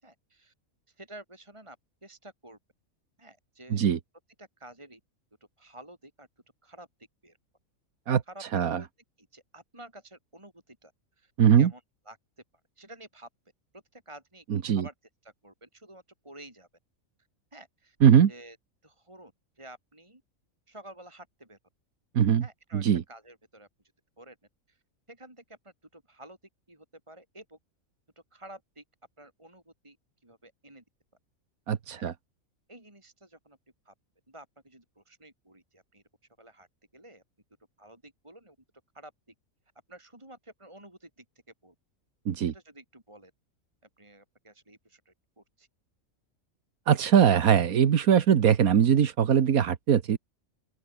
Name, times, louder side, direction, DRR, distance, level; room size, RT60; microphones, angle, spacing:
voice 1, 0.0-0.5 0.9-1.8 2.0-2.6 3.2-3.9 4.4-5.0 5.6-6.3 6.6-6.9 7.2-7.4 8.3-8.4 8.8-8.9 9.2-12.2 12.8-13.3 13.7-14.9 15.2-16.7 17.5-18.0 18.3-18.6 18.8-20.2 20.7-21.6 22.4-23.7 24.2-24.4 24.7-24.8 25.1-26.4 26.7-27.6 28.3-28.8 29.2-30.8 32.0-32.1 32.7-33.6 33.8-33.9 34.3-36.0 36.4-36.7 36.9-37.2 37.8-38.6 38.9-39.3 39.9-41.3 41.6-41.7 42.5-43.3 44.0-45.7, right 1 dB, 20° right, 4.1 m, -51 dB
voice 2, 11.4-11.7 14.5-14.9 18.0-18.3 22.2-22.4 22.7-23.0 31.7-32.1 42.3-42.5 46.9-50.2, right 8 dB, 80° right, 1.6 m, -21 dB
open air
omnidirectional pair, 1.5 m